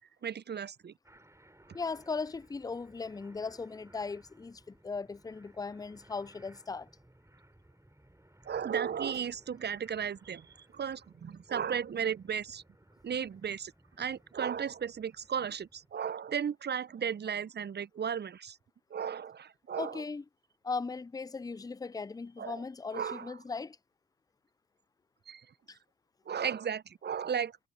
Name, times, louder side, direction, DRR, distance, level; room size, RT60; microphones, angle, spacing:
voice 1, 0.2-0.9 8.4-12.6 13.0-13.7 14.0-18.6 18.9-20.0 22.4-22.6 22.9-23.3 25.3-25.4 26.3-27.6, right 7 dB, 30° right, 0.8 m, -35 dB
sound 1, 1.0-15.9, right 1 dB, 10° right, 5.1 m, -61 dB
voice 2, 1.7-6.9 19.8-20.2 20.6-23.8 25.7-25.8, left 4 dB, 10° left, 0.6 m, -38 dB
hypercardioid pair, 50°, 33 cm